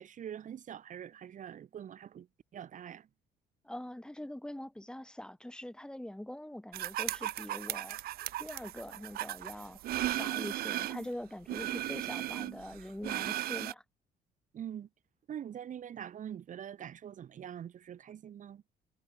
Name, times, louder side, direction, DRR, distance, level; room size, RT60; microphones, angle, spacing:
voice 1, 0.0-2.3 2.5-3.1 14.5-14.9 15.3-18.6, right 9 dB, 50° right, 1.8 m, -44 dB
voice 2, 3.6-8.0 8.4-13.8, left 1 dB, 5° left, 2.0 m, -43 dB
sound 1, 6.7-11.1 11.5-13.7, right 14 dB, 65° right, 0.7 m, -36 dB
cardioid pair, 110°, 17 cm